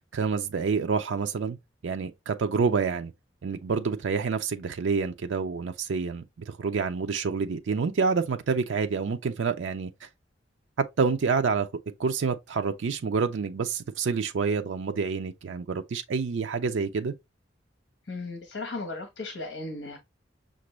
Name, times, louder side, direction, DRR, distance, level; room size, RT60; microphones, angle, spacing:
voice 1, 0.1-1.6 1.8-3.1 3.4-10.1 10.8-11.7 12.0-17.1, right 5 dB, 80° right, 0.4 m, -28 dB
voice 2, 18.1-20.0, left 2 dB, 60° left, 0.9 m, -36 dB
5.9 x 2.5 x 3.1 m
head